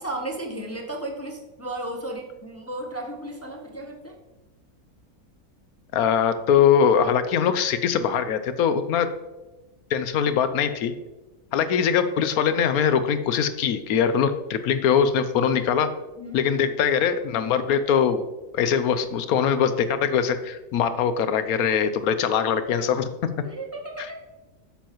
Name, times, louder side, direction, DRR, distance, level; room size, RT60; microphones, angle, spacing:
voice 1, 0.0-4.1 16.2-16.7 23.4-24.2, right 1 dB, 20° left, 2 dB, 0.4 m, -34 dB
voice 2, 5.9-9.1 9.9-10.9 11.5-15.9 16.3-18.2 18.5-23.1 24.0-24.1, left 7 dB, 75° left, 11 dB, 1.1 m, -22 dB
8.8 x 7.2 x 3.0 m, 1.1 s
omnidirectional pair, 1.6 m